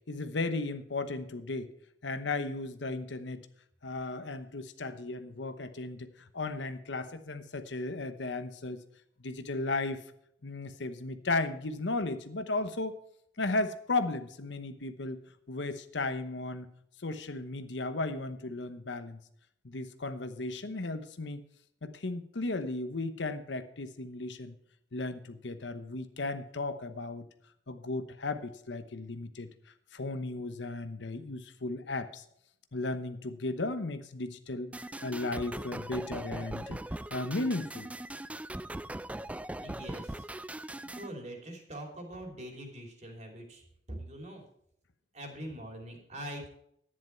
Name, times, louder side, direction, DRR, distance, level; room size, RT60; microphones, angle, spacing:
voice 1, 0.1-1.7 2.0-3.5 3.8-6.1 6.3-8.8 9.2-10.0 10.4-13.0 13.4-15.2 15.5-16.7 17.0-19.2 19.6-21.4 21.8-24.5 24.9-27.3 27.7-29.5 29.9-32.2 32.7-34.7 35.0-36.8 37.1-37.9 40.8-40.9, left 2 dB, 75° left, 10 dB, 1.0 m, -35 dB
sound 1, 34.7-41.1, right 1 dB, 10° right, 0.3 m, -40 dB
voice 2, 39.6-40.3 40.9-43.6 43.9-44.4 45.1-46.5, right 1 dB, 40° right, 3 dB, 3.0 m, -43 dB
11.0 x 10.0 x 4.5 m, 0.71 s
head